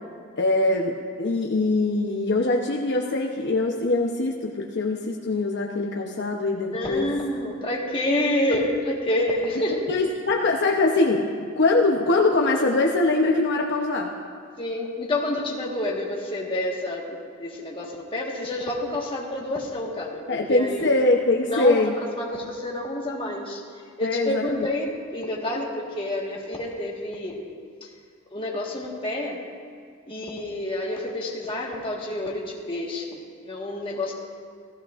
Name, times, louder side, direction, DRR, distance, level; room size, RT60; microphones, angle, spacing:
voice 1, 0.4-7.1 9.9-11.3 11.6-14.1 20.3-21.9 24.0-24.7, left 2 dB, 55° left, 0 dB, 0.8 m, -22 dB
voice 2, 6.7-9.9 14.6-20.9 21.5-21.9 22.2-23.6 24.0-27.5 28.3-29.4 30.1-34.1, left 1 dB, 25° left, -2 dB, 1.5 m, -28 dB
16.5 x 14.5 x 2.5 m, 2.1 s
head